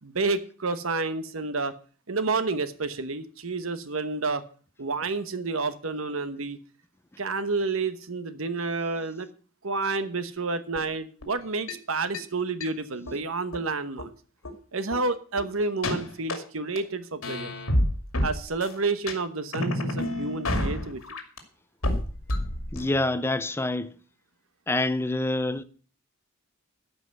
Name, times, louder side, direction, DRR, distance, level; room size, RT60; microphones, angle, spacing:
voice 1, 0.0-1.7 2.1-4.4 4.8-6.6 7.2-9.3 9.6-14.1 14.7-17.5 18.2-21.0, right 3 dB, 80° right, 1.1 m, -29 dB
sound 1, 10.8-10.9 11.2-11.3 11.7-11.8 12.1-12.2 12.6-12.7 13.1-13.2 13.5-13.6 14.0-14.1 14.4-14.5 14.9-15.0 15.4-15.5 15.8-16.4 16.8-16.9 17.2-18.8 19.1-19.2 19.5-21.4 21.8-23.1, left 1 dB, 90° left, 2.5 m, -29 dB
voice 2, 22.7-23.9 24.7-25.6, left 2 dB, 10° left, 0.6 m, -26 dB
13.0 x 5.7 x 7.9 m
head